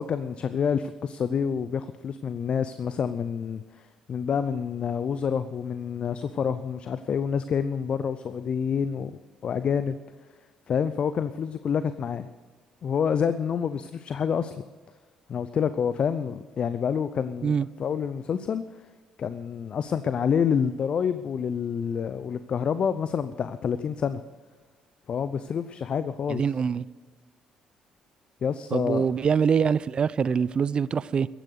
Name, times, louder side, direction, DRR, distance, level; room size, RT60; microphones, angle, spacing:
voice 1, 0.0-10.0 10.7-12.3 12.8-14.6 15.3-17.5 17.8-18.6 19.2-24.2 25.1-26.4 28.4-29.1, left 7 dB, 50° left, 0.6 m, -28 dB
voice 2, 26.3-26.8 28.7-31.3, right 6 dB, 45° right, 0.5 m, -24 dB
15.0 x 10.0 x 6.5 m
hypercardioid pair, 50°, 2 cm